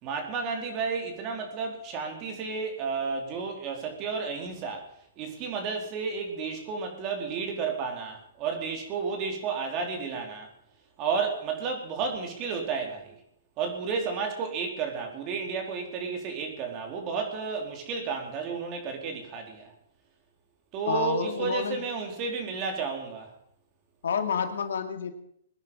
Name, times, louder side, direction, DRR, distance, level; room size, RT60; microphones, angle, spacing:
voice 1, 0.0-4.8 5.2-10.5 11.0-13.2 13.6-19.7 20.7-23.3, right 5 dB, 30° right, 3 dB, 4.1 m, -32 dB
voice 2, 20.9-21.8 24.0-25.1, left 6 dB, 80° left, 6 dB, 2.5 m, -29 dB
22.0 x 10.5 x 5.7 m, 0.72 s
hypercardioid pair, 150°, 0 cm